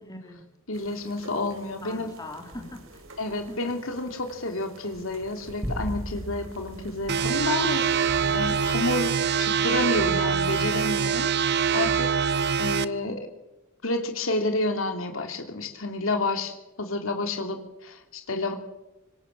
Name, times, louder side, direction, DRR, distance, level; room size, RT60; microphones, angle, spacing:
voice 1, 0.0-0.5 1.8-3.1 3.5-3.8 8.2-8.5, left 1 dB, 20° left, 3 dB, 3.5 m, -42 dB
voice 2, 0.7-2.1 3.2-9.1 9.4-11.3 11.7-12.1 12.6-13.2 13.8-18.5, left 2 dB, 85° left, 5 dB, 3.0 m, -30 dB
sound 1, 0.7-9.5, right 1 dB, 90° right, 4.3 m, -48 dB
sound 2, 5.6-8.1, equal, 20° right, 2.4 m, -36 dB
sound 3, 7.1-12.8, right 7 dB, 55° right, 0.9 m, -24 dB
25.5 x 24.5 x 7.4 m, 1.0 s
head